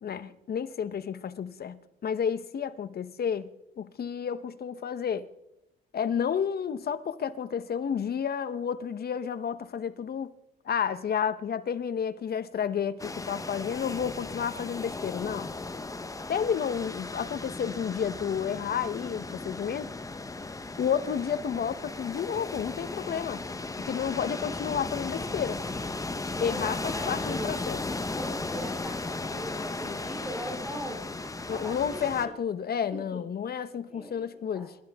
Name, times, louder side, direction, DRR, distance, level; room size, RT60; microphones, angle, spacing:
voice 1, 0.0-3.5 3.8-5.3 5.9-10.3 10.6-15.5 16.3-19.9 20.8-23.5 23.8-25.6 26.4-27.8 31.5-34.8, left 7 dB, 50° left, 1.1 m, -31 dB
sound 1, 13.0-32.3, left 3 dB, 15° left, 1.1 m, -36 dB
voice 2, 26.4-27.6 28.2-31.0 31.4-32.3 32.9-33.2 33.9-34.6, equal, 5° right, 3.4 m, -40 dB
25.5 x 12.5 x 3.7 m
cardioid pair, 90°, 20 cm